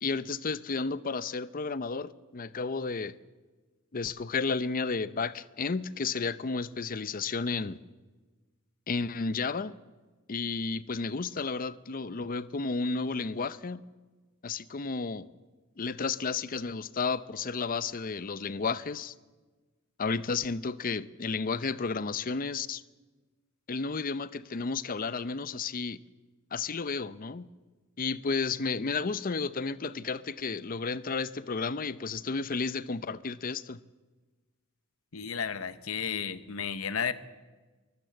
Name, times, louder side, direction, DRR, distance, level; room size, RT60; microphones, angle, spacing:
voice 1, 0.0-3.2 3.9-7.8 8.9-9.7 10.3-13.9 14.4-15.3 15.8-19.1 20.0-22.8 23.7-26.0 26.5-27.5 28.0-33.8, left 4 dB, 40° left, 0.6 m, -32 dB
voice 2, 35.1-37.1, left 7 dB, 75° left, 1.0 m, -33 dB
23.5 x 14.0 x 7.9 m
head